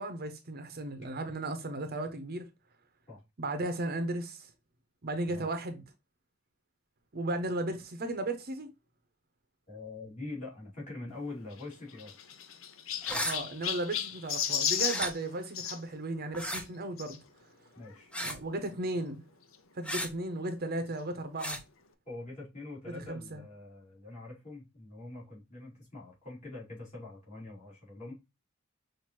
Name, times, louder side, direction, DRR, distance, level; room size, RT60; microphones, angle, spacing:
voice 1, 0.0-2.5 3.4-4.5 5.0-5.8 7.1-8.7 13.2-17.2 18.2-19.2 19.7-21.6 22.9-23.4, right 2 dB, 50° right, 0.7 m, -35 dB
voice 2, 9.7-12.2 17.7-18.1 22.0-28.1, left 2 dB, 35° left, 2.8 m, -44 dB
Chirp tweet, 11.5-15.8 17.0-17.2 17.9-18.0 18.2-18.3 19.5-19.6, left 9 dB, 75° left, 0.6 m, -34 dB
sound 1, 13.0-13.4 14.8-15.1 16.3-16.6 18.1-18.4 19.8-20.1 21.4-21.6, equal, 5° left, 0.7 m, -34 dB
5.8 x 2.6 x 3.0 m
head